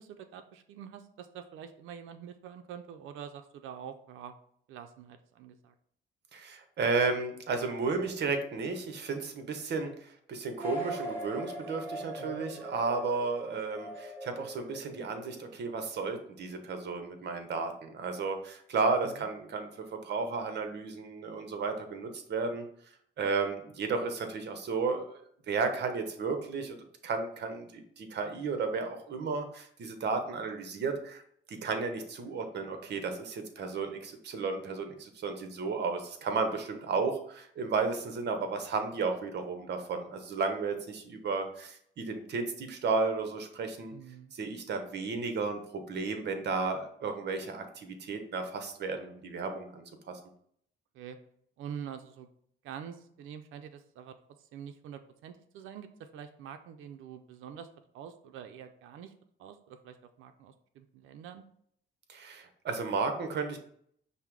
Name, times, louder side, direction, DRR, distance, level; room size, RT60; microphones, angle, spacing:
voice 1, 0.0-4.3 4.7-5.7 12.2-12.4 19.0-19.3 43.9-44.3 50.9-51.2 51.6-52.3 52.6-57.7 57.9-59.1 59.4-61.4, right 8 dB, 85° right, 8 dB, 0.5 m, -46 dB
voice 2, 6.3-22.7 23.2-25.2 25.5-26.7 27.0-31.2 31.5-43.9 44.3-50.2 62.1-63.6, right 4 dB, 60° right, 6 dB, 0.9 m, -33 dB
sound 1, 10.6-15.4, right 1 dB, 10° right, 1.5 m, -40 dB
5.5 x 2.1 x 4.6 m, 0.65 s
cardioid pair, 90°, 20 cm